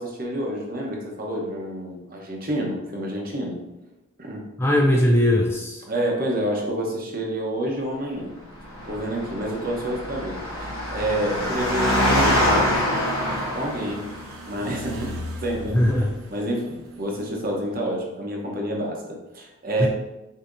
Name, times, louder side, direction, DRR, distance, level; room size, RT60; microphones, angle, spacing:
voice 1, 0.0-3.6 4.2-4.5 5.9-8.3 8.8-12.8 13.5-14.1 14.4-15.9 16.3-19.9, right 1 dB, 40° right, -1 dB, 0.9 m, -28 dB
voice 2, 4.6-5.8 15.7-16.1 19.8-19.9, left 1 dB, 10° left, -1 dB, 0.4 m, -19 dB
Engine, 8.6-14.2, left 1 dB, 70° left, 0.9 m, -24 dB
sound 1, 11.6-17.8, equal, 75° right, 0.8 m, -39 dB
6.5 x 2.8 x 2.6 m, 1.0 s
head